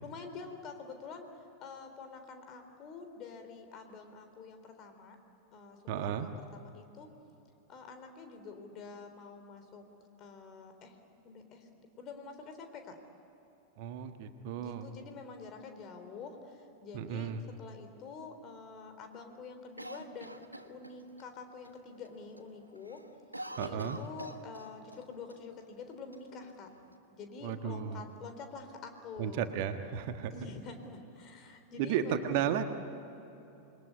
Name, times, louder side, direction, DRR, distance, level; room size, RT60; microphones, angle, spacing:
voice 1, 0.0-5.2 5.5-7.1 7.7-9.9 10.2-11.0 11.2-11.7 12.0-13.0 14.5-23.0 23.6-26.7 27.1-29.5 30.3-32.4, left 4 dB, 35° left, 6 dB, 3.8 m, -47 dB
voice 2, 5.9-6.3 13.8-14.9 16.9-17.4 23.6-24.0 27.4-28.0 29.2-30.3 31.8-32.6, right 9 dB, 50° right, 7 dB, 1.5 m, -34 dB
Cough, 19.8-21.3 21.6-21.7 22.1-22.5 22.8-25.0 25.3-25.4 26.1-26.9, right 1 dB, 85° right, 1.4 m, -45 dB
28.0 x 21.5 x 9.7 m, 3.0 s
figure-of-eight pair, 90°, 0 cm